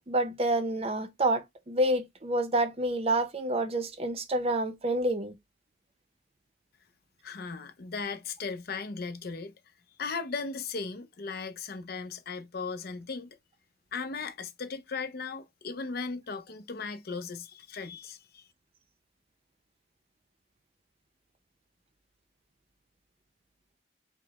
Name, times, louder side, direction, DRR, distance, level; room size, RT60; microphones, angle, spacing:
voice 1, 0.0-5.3, right 1 dB, 30° right, 0.6 m, -28 dB
voice 2, 7.2-9.5 10.0-13.4 13.9-18.5, left 4 dB, 50° left, 0.5 m, -37 dB
4.8 x 2.1 x 4.0 m
head